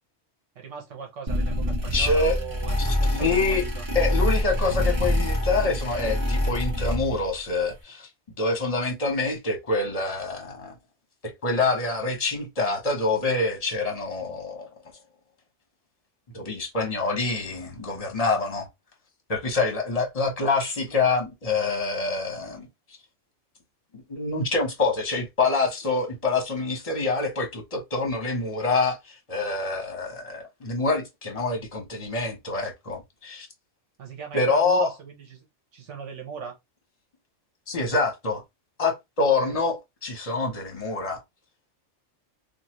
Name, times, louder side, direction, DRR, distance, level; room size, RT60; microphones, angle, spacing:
voice 1, 0.5-3.8 34.0-35.5 35.7-36.6 39.2-39.6, right 7 dB, 75° right, 1.2 m, -39 dB
sound 1, 1.3-7.3, left 1 dB, 25° right, 1.3 m, -25 dB
voice 2, 1.9-2.4 2.8-3.6 3.9-8.1 8.4-10.7 11.4-14.7 16.3-18.7 19.3-22.7 23.9-33.5 34.3-34.9 37.7-38.4 38.8-41.2, left 3 dB, 35° left, 1.1 m, -26 dB
3.0 x 2.5 x 2.9 m
omnidirectional pair, 1.2 m